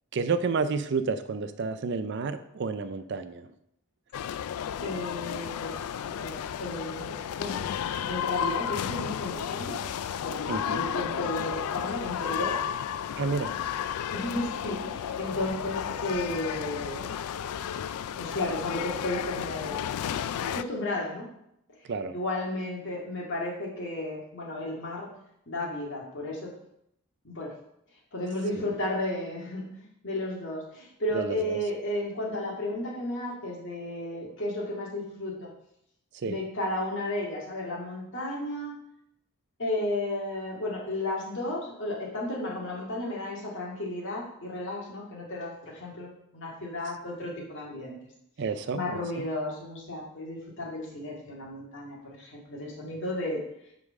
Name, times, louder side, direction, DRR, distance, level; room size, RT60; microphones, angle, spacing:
voice 1, 0.1-3.5 10.5-10.9 13.2-13.5 21.9-22.1 28.6-28.7 31.1-31.6 36.1-36.4 48.4-49.2, right 4 dB, 50° right, 11 dB, 0.4 m, -30 dB
sound 1, 4.1-20.6, left 9 dB, 75° left, 0.3 m, -33 dB
voice 2, 4.8-7.6 8.1-9.8 10.2-12.6 14.1-17.1 18.2-19.9 20.4-21.3 22.1-25.1 25.5-26.5 27.2-27.5 28.1-35.5 36.2-38.7 39.6-48.0 48.7-53.4, left 1 dB, 55° left, -3 dB, 1.9 m, -33 dB
5.3 x 4.8 x 6.3 m, 0.76 s
head